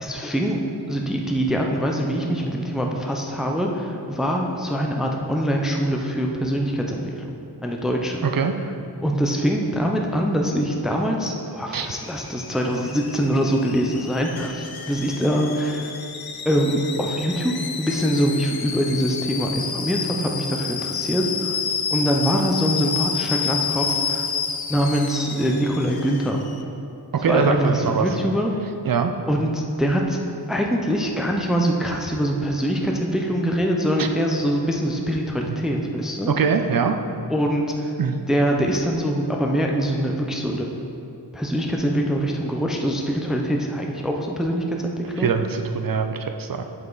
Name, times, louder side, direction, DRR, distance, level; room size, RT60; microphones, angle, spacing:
voice 1, 0.0-0.6 0.9-7.3 7.6-8.3 9.0-15.9 16.4-17.5 17.8-21.6 21.9-24.3 24.7-26.4 27.3-28.5 29.3-30.2 30.5-36.3 37.3-37.9 38.3-40.7 41.3-45.3, equal, ahead, 1 dB, 0.5 m, -23 dB
voice 2, 8.2-8.5 11.7-11.9 27.2-28.1 28.8-29.1 34.0-34.1 35.5-35.6 36.4-36.9 38.0-38.2 45.2-46.6, right 6 dB, 55° right, 6 dB, 0.5 m, -22 dB
Alarm / Boiling, 11.8-26.6, left 6 dB, 60° left, 0.6 m, -30 dB
7.5 x 5.8 x 3.9 m, 2.6 s
wide cardioid pair, 100°, 43 cm